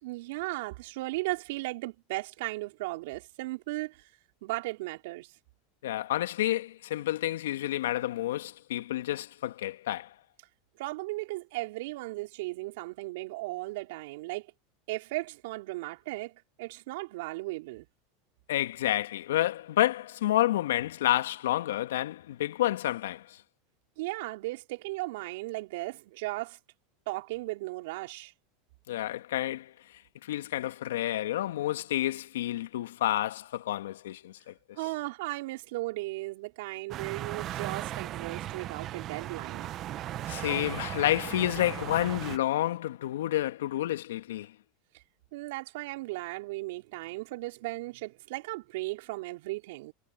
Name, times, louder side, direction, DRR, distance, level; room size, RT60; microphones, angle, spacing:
voice 1, 0.0-4.1 4.4-5.3 10.8-14.5 14.9-17.9 24.0-26.6 27.1-28.3 34.7-39.7 44.9-45.0 45.3-49.9, right 21 dB, 70° right, 4.2 m, -36 dB
voice 2, 5.8-10.1 18.5-23.4 28.9-29.7 30.2-34.5 40.3-44.5, left 13 dB, 80° left, 2.0 m, -29 dB
sound 1, 36.9-42.4, right 13 dB, 45° right, 1.6 m, -37 dB
hypercardioid pair, 95°, 0 cm